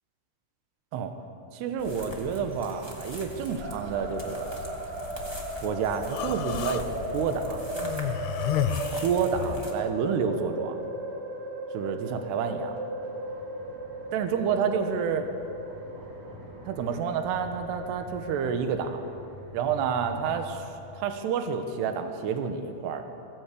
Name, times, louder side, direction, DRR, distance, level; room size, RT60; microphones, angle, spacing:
voice 1, 1.5-4.6 5.6-7.7 9.0-10.8 11.7-12.7 14.1-15.3 16.7-19.0 19.5-20.6 21.0-23.0, right 6 dB, 70° right, 6 dB, 3.2 m, -29 dB
sound 1, 1.8-9.7, left 1 dB, 15° right, 0.9 m, -41 dB
sound 2, 3.6-21.0, right 1 dB, 50° right, 4.5 m, -37 dB
Human voice, 6.1-6.8 7.8-9.7, left 10 dB, 80° left, 2.6 m, -31 dB
23.0 x 15.0 x 8.4 m, 2.8 s
omnidirectional pair, 5.2 m